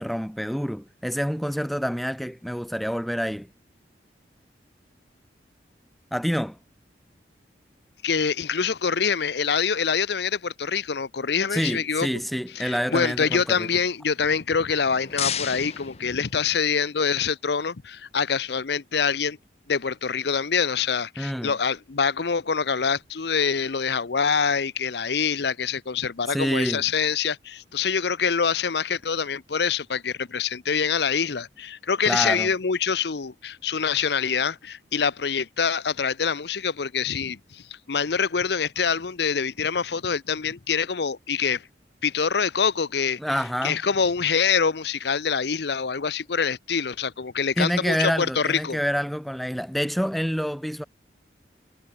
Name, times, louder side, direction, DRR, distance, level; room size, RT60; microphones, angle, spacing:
voice 1, 0.0-3.5 6.1-6.6 11.5-13.7 21.2-21.5 26.3-26.8 32.1-32.5 43.2-43.8 47.6-50.8, equal, ahead, 1.5 m, -27 dB
voice 2, 8.0-12.1 12.5-19.4 19.7-41.7 42.0-48.8, left 6 dB, 65° left, 0.7 m, -25 dB
sound 1, 14.7-16.8, left 9 dB, 35° left, 1.6 m, -33 dB
head